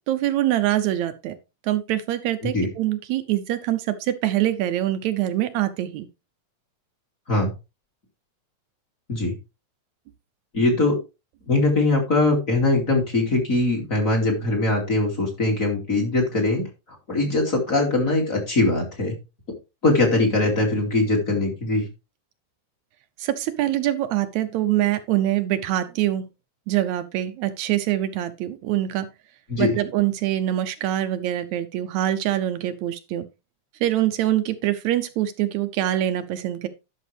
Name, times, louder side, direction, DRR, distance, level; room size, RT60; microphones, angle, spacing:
voice 1, 0.1-1.4 1.6-6.1 23.2-26.2 26.7-29.1 29.6-33.3 33.8-36.7, right 13 dB, 80° right, 10 dB, 2.0 m, -24 dB
voice 2, 10.5-11.0 11.5-16.6 17.1-19.1 19.8-21.9 29.5-29.7, left 2 dB, 30° left, 0 dB, 2.8 m, -21 dB
11.0 x 6.4 x 3.4 m, 0.27 s
omnidirectional pair, 3.3 m